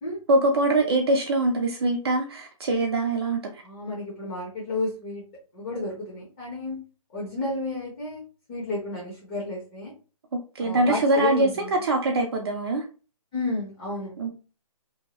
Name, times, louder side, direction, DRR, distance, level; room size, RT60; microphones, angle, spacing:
voice 1, 0.3-3.5 10.3-12.8 14.2-14.3, right 2 dB, 45° right, 2 dB, 0.4 m, -23 dB
voice 2, 3.6-5.2 5.5-6.8 7.1-8.2 8.5-9.9 10.6-11.8 13.3-14.1, left 2 dB, 20° left, -6 dB, 0.8 m, -31 dB
2.7 x 2.2 x 2.8 m, 0.36 s
figure-of-eight pair, 145°, 19 cm